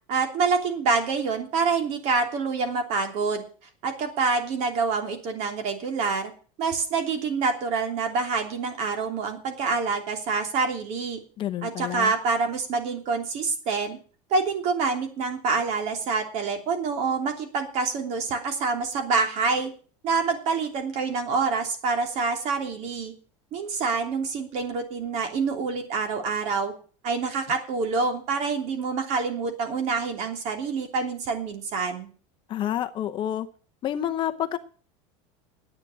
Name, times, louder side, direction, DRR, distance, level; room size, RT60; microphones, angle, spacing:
voice 1, 0.1-3.4 3.8-6.3 6.6-11.2 11.6-14.0 14.3-19.7 20.0-23.1 23.5-26.7 27.0-32.1, right 4 dB, 45° right, 5 dB, 3.1 m, -26 dB
voice 2, 11.4-12.1 32.5-33.5 33.8-34.6, left 11 dB, 30° left, 8 dB, 0.8 m, -28 dB
10.5 x 8.7 x 8.4 m, 0.41 s
supercardioid pair, 160°, 16 cm